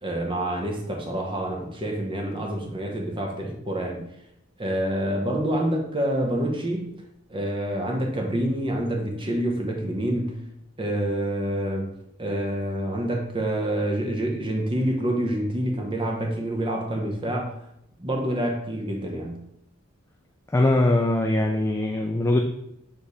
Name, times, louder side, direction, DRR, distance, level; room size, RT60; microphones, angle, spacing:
voice 1, 0.0-4.0 4.6-6.9 7.3-10.4 10.8-11.9 12.2-17.5 18.0-19.4, right 1 dB, 25° right, 1 dB, 1.0 m, -27 dB
voice 2, 20.5-22.4, left 2 dB, 15° left, 2 dB, 0.4 m, -21 dB
6.7 x 3.4 x 4.1 m, 0.79 s
head